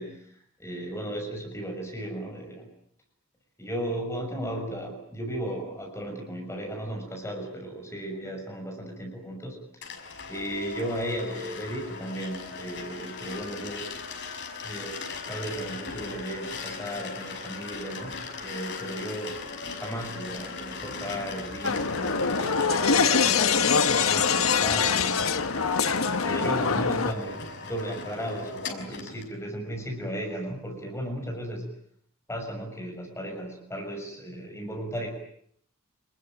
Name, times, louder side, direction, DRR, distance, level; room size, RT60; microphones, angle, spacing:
voice 1, 0.0-2.7 3.6-9.9 10.3-13.9 14.6-19.4 19.8-25.5 26.2-27.4 27.7-31.7 32.3-35.1, equal, 15° left, 2 dB, 6.7 m, -35 dB
sound 1, 9.8-29.3, left 4 dB, 60° left, 5.9 m, -38 dB
sound 2, 21.6-27.1, left 5 dB, 80° left, 1.4 m, -24 dB
28.5 x 21.0 x 9.1 m, 0.66 s
head